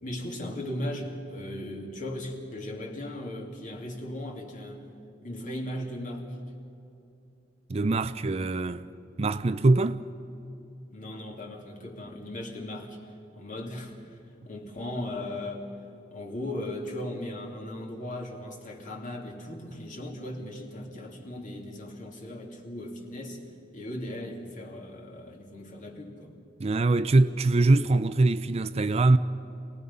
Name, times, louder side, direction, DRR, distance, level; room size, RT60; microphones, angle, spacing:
voice 1, 0.0-4.8 5.2-6.4 10.9-13.0 13.3-14.2 14.4-15.7 16.1-23.4 23.7-26.3, left 1 dB, 45° left, 2.9 m, -37 dB
voice 2, 7.7-8.9 9.2-10.0 26.6-29.2, right 2 dB, 35° right, 0.5 m, -23 dB
27.0 x 19.0 x 5.5 m
head